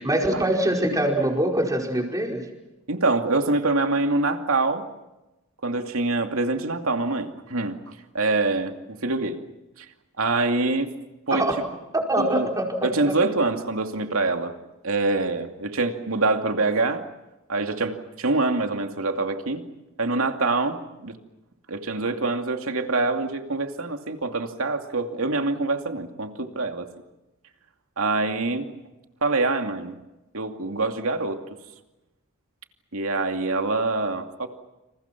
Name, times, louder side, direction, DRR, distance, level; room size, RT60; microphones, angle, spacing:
voice 1, 0.0-2.4 11.3-11.5 11.9-13.1, right 1 dB, 15° right, 1 dB, 5.0 m, -24 dB
voice 2, 2.9-4.8 5.6-9.4 9.8-9.9 10.2-10.9 11.3-11.4 12.2-12.5 12.8-14.5 14.8-17.0 17.5-19.6 20.0-21.2 21.7-26.9 28.0-28.7 29.2-30.0 30.3-31.4 32.9-34.5, right 3 dB, 75° right, 5 dB, 2.6 m, -25 dB
29.5 x 28.0 x 6.1 m, 1.0 s
head